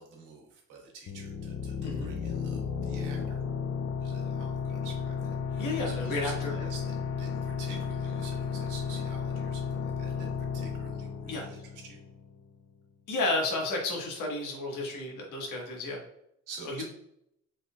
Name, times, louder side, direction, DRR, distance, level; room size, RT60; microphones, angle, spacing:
voice 1, 0.0-3.4 4.0-12.0 16.5-16.8, right 4 dB, 85° right, -1 dB, 1.5 m, -48 dB
sound 1, 1.1-12.5, left 6 dB, 55° left, 0.5 m, -33 dB
voice 2, 1.8-2.2 5.6-6.7 11.3-11.5 13.1-16.0 16.6-16.8, left 2 dB, 90° left, 0 dB, 1.4 m, -32 dB
5.1 x 3.8 x 2.3 m, 0.74 s
cardioid pair, 90°, 30 cm